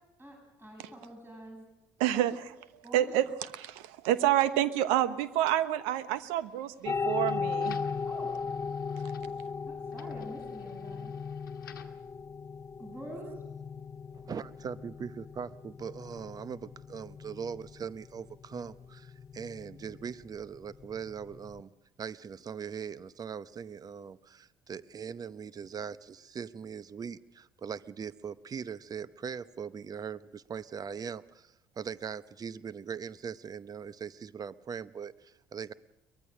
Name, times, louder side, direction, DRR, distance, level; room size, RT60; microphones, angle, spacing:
voice 1, 0.2-1.7 2.1-2.2 2.8-3.2 8.0-8.3 9.3-9.4 9.7-11.1 12.8-13.3, right 1 dB, 20° right, 1 dB, 7.6 m, -46 dB
voice 2, 2.0-7.8 9.0-9.1, right 12 dB, 70° right, 13 dB, 1.1 m, -29 dB
sound 1, 6.2-12.1, left 8 dB, 90° left, 1.2 m, -56 dB
sound 2, 6.8-21.6, left 5 dB, 30° left, 0.6 m, -38 dB
voice 3, 14.1-21.7 22.0-35.7, right 7 dB, 35° right, 16 dB, 0.8 m, -40 dB
23.0 x 20.0 x 6.5 m, 0.94 s
hypercardioid pair, 55°, 11 cm